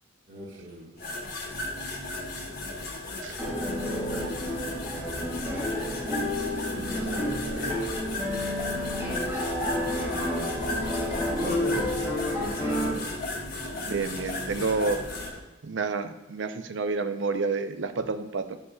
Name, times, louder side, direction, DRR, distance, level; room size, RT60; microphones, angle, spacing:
voice 1, 0.3-1.0 6.7-7.8 11.4-13.2, equal, 50° right, -7 dB, 1.5 m, -37 dB
sound 1, 1.0-15.3, left 2 dB, 50° left, 1.1 m, -36 dB
sound 2, 1.5-15.4, equal, 70° left, 1.4 m, -43 dB
sound 3, 3.4-12.9, left 1 dB, 10° right, 1.9 m, -30 dB
voice 2, 13.8-15.0 15.6-18.6, right 4 dB, 80° right, 9 dB, 0.5 m, -29 dB
9.4 x 5.3 x 2.4 m, 1.0 s
head